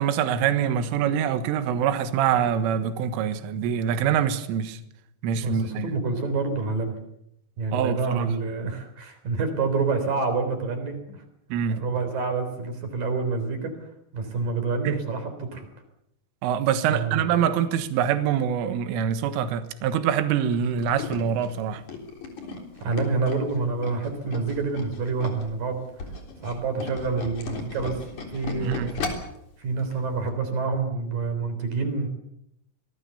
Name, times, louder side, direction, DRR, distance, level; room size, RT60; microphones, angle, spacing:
voice 1, 0.0-4.8 5.2-5.9 7.7-8.3 11.5-11.8 14.9-15.0 16.4-21.8 28.6-28.9, right 8 dB, 80° right, 3.9 m, -25 dB
voice 2, 5.4-7.0 7.6-11.0 11.7-13.7 14.1-15.7 16.9-17.4 22.8-25.8 26.4-28.0 28.3-29.0 29.6-32.1, right 4 dB, 45° right, 4.9 m, -27 dB
Tools, 20.5-25.5 25.9-29.4 29.8-30.0 30.3-30.4, left 3 dB, 40° left, 4.6 m, -35 dB
26.5 x 20.0 x 7.0 m
omnidirectional pair, 5.8 m